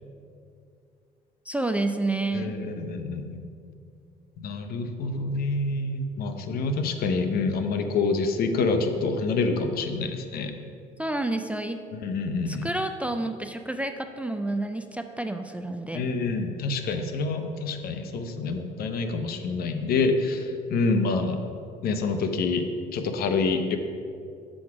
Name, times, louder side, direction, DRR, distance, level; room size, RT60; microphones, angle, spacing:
voice 1, 1.5-2.6 11.0-11.8 12.5-16.0, right 2 dB, 10° right, 7 dB, 0.3 m, -29 dB
voice 2, 2.3-3.4 4.4-10.5 12.0-12.7 15.9-21.4 21.8-23.8, left 3 dB, 65° left, 7 dB, 0.7 m, -27 dB
6.4 x 4.7 x 6.0 m, 2.4 s
cardioid pair, 110°, 17 cm